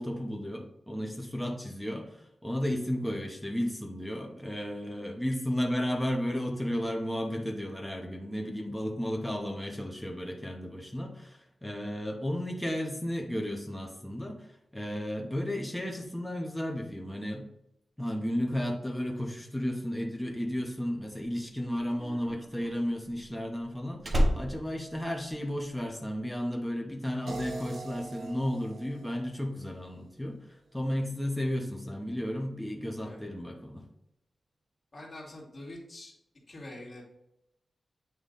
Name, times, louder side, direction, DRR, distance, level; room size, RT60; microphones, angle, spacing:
voice 1, 0.0-17.5 18.0-33.8, equal, 5° left, 1 dB, 0.8 m, -33 dB
Slam, 21.7-25.8 26.1-26.5, equal, 35° right, 0.9 m, -31 dB
sound 1, 27.3-30.3, right 3 dB, 75° right, 0.8 m, -43 dB
voice 2, 34.9-36.1 36.5-37.0, left 1 dB, 35° left, -4 dB, 2.0 m, -45 dB
8.2 x 3.1 x 3.8 m, 0.82 s
wide cardioid pair, 125°, 0 cm